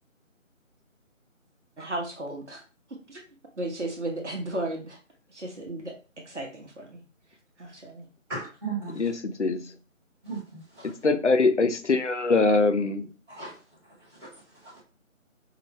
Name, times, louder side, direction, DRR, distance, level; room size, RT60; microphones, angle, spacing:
voice 1, 1.8-2.6 3.1-3.2 3.6-5.0 5.3-6.0 6.3-7.0 7.6-8.0, right 1 dB, 60° right, 1.0 m, -34 dB
voice 2, 8.3-9.0 10.2-10.9 13.3-13.6 14.2-14.8, right 4 dB, 20° right, 1.0 m, -37 dB
voice 3, 8.9-9.7 10.8-13.1, left 3 dB, 60° left, 0.6 m, -23 dB
4.6 x 2.1 x 3.1 m
figure-of-eight pair, 160°, 40 cm